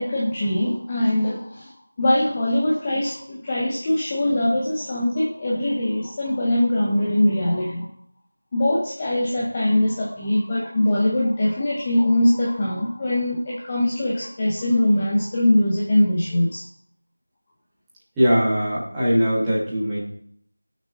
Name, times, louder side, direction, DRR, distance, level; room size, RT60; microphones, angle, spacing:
voice 1, 0.0-1.7 2.0-7.9 8.5-16.6, left 1 dB, 15° left, -3 dB, 0.6 m, -22 dB
voice 2, 18.2-20.0, equal, 5° right, -12 dB, 1.4 m, -20 dB
15.5 x 6.1 x 2.7 m, 0.64 s
figure-of-eight pair, 180°, 0 cm